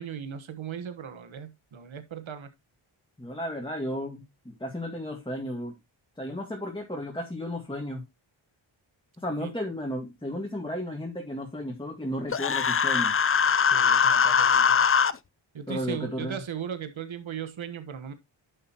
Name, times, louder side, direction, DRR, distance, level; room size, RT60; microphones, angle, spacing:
voice 1, 0.0-2.5 9.4-9.5 13.6-14.8 15.5-18.1, right 8 dB, 70° right, 1.4 m, -37 dB
voice 2, 3.2-5.8 6.2-8.0 9.2-13.2 15.7-16.4, equal, 10° left, 1.9 m, -34 dB
Human voice, 12.3-15.1, left 6 dB, 30° left, 0.5 m, -22 dB
11.0 x 7.0 x 2.9 m
cardioid pair, 70°, 49 cm